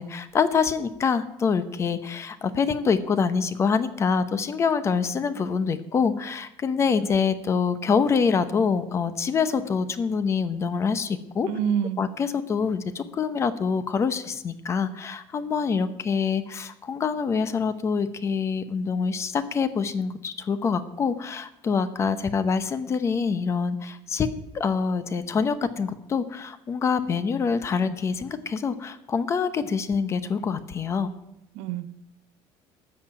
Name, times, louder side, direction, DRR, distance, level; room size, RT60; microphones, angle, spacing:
voice 1, 0.0-11.5 12.0-24.3 24.5-31.1, left 5 dB, 25° left, 13 dB, 0.8 m, -25 dB
voice 2, 11.4-12.0 31.5-31.9, right 8 dB, 80° right, 12 dB, 0.9 m, -26 dB
13.0 x 6.7 x 8.9 m, 0.83 s
cardioid pair, 165°, 11 cm